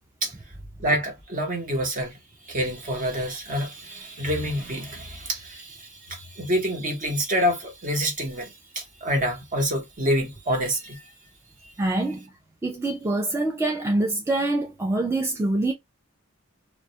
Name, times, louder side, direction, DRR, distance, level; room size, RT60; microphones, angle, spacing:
voice 1, 0.8-2.2 2.4-11.0 11.6-11.7, equal, 40° right, 0.8 m, -27 dB
voice 2, 11.8-12.3 12.6-15.7, right 2 dB, 15° right, 0.4 m, -25 dB
2.2 x 2.0 x 2.7 m
head